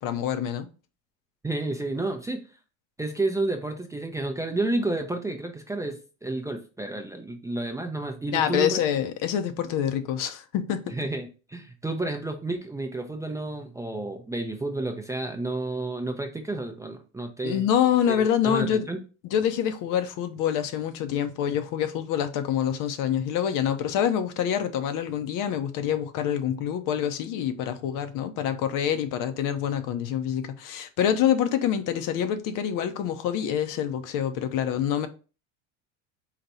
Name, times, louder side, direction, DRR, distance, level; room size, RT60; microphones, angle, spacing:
voice 1, 0.0-0.7 8.3-10.9 17.4-18.9 19.2-35.1, left 9 dB, 55° left, 0.6 m, -26 dB
voice 2, 1.4-2.4 3.0-8.8 10.9-17.7 18.1-19.0, right 2 dB, 10° right, 0.4 m, -31 dB
4.0 x 2.2 x 4.1 m
supercardioid pair, 95°, 39 cm